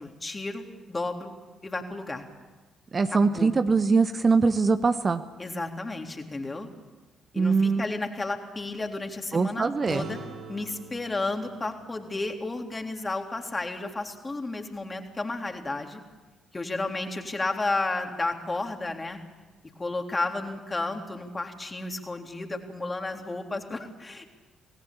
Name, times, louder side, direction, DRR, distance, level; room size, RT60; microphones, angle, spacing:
voice 1, 0.0-1.3 1.6-2.3 3.1-3.5 5.4-6.7 7.3-10.2 10.5-16.0 16.5-19.2 19.8-24.2, left 2 dB, 25° left, 4 dB, 3.5 m, -32 dB
voice 2, 2.9-5.2 7.4-7.9 9.3-10.1, right 4 dB, 35° right, 10 dB, 1.2 m, -22 dB
sound 1, 9.9-14.5, right 3 dB, 65° right, 3.5 m, -46 dB
27.0 x 19.5 x 8.7 m, 1.2 s
figure-of-eight pair, 40°, 0 cm